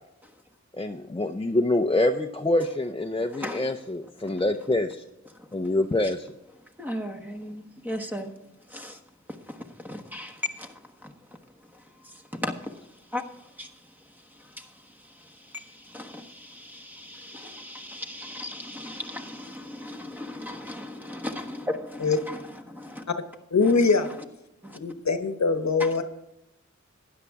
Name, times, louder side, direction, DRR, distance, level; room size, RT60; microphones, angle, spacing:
voice 1, 0.7-4.9 5.5-6.3, left 1 dB, 20° left, 0.6 m, -25 dB
voice 2, 3.3-3.7 5.4-5.5 6.8-8.3 8.7-9.0 9.5-11.1 11.7-12.7 13.1-13.7 14.4-23.0 23.7-23.8 24.6-24.8 25.8-25.9, left 1 dB, 5° right, 1.3 m, -37 dB
voice 3, 23.5-24.1 24.7-26.0, left 4 dB, 70° left, 1.0 m, -22 dB
13.0 x 9.7 x 3.6 m
wide cardioid pair, 55°, 29 cm